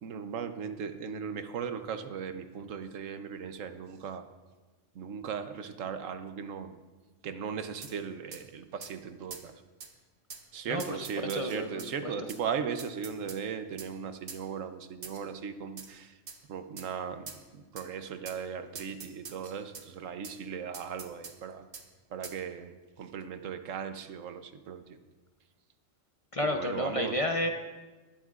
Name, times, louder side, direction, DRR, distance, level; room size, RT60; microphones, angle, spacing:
voice 1, 0.0-4.3 4.9-6.8 7.2-9.5 10.5-16.1 16.5-21.7 22.1-25.0 26.4-27.2, right 7 dB, 85° right, 9 dB, 1.2 m, -37 dB
sound 1, 7.8-8.0 8.3-8.4 8.8-8.9 9.3-9.5 9.8-9.9 10.3-10.4 10.8-11.9 12.3-12.4 12.8-13.4 13.8-13.9 14.3-14.4 15.0-15.3 15.8-15.9 16.3-16.4 16.8-16.9 17.3-17.4 17.8-17.9 18.2-18.4 18.7-19.9 20.2-20.4 20.7-21.4 21.7-21.9 22.2-22.4, right 5 dB, 50° right, 1.0 m, -45 dB
voice 2, 11.3-12.1 26.3-27.5, left 1 dB, 35° left, 4 dB, 0.6 m, -31 dB
19.0 x 12.0 x 2.5 m, 1.2 s
omnidirectional pair, 1.3 m